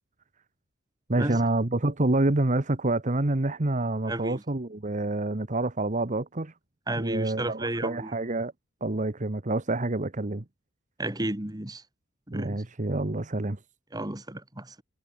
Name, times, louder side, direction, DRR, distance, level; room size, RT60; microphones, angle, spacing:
voice 1, 1.1-6.5 7.0-8.5 8.8-10.4 12.3-13.6, right 2 dB, 35° right, 1.2 m, -27 dB
voice 2, 4.1-4.4 6.9-8.1 11.0-11.8 12.3-12.6 13.9-14.8, right 1 dB, 20° right, 1.9 m, -32 dB
head